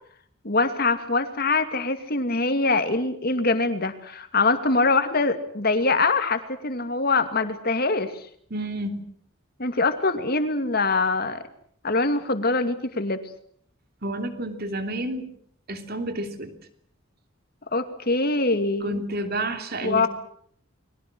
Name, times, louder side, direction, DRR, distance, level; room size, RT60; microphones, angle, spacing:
voice 1, 0.4-8.3 9.6-11.4 11.8-13.2 17.7-19.0 19.8-20.1, left 3 dB, 45° left, 8 dB, 2.4 m, -23 dB
voice 2, 8.5-9.0 14.0-15.3 15.7-16.5 18.8-20.1, right 1 dB, 45° right, 7 dB, 3.0 m, -30 dB
30.0 x 22.0 x 6.2 m, 0.63 s
head